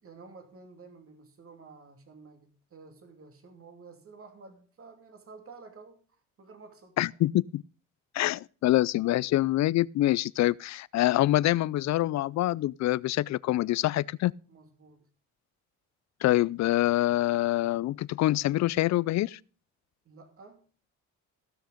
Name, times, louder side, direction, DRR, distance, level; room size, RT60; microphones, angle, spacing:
voice 1, 0.0-7.0 14.5-15.1 20.0-20.6, right 4 dB, 45° right, 2.7 m, -51 dB
voice 2, 7.0-7.6 8.1-14.3 16.2-19.4, left 15 dB, 65° left, 0.4 m, -25 dB
15.5 x 6.4 x 5.0 m
cardioid pair, 90°, 30 cm